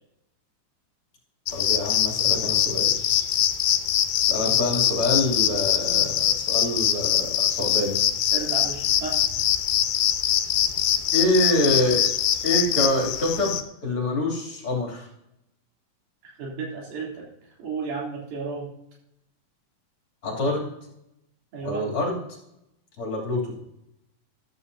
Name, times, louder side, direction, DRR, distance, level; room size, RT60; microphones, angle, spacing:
sound 1, 1.5-13.6, left 11 dB, 85° left, 2.5 m, -23 dB
voice 1, 1.5-3.2 4.2-8.0 11.1-12.1 12.4-15.1 20.2-20.7 21.6-22.2 23.0-23.6, left 1 dB, 40° left, -2 dB, 3.6 m, -26 dB
voice 2, 8.3-9.1 16.4-17.3 17.6-18.7 21.5-21.8, right 4 dB, 85° right, -4 dB, 5.0 m, -32 dB
14.0 x 13.0 x 2.8 m, 0.82 s
omnidirectional pair, 4.1 m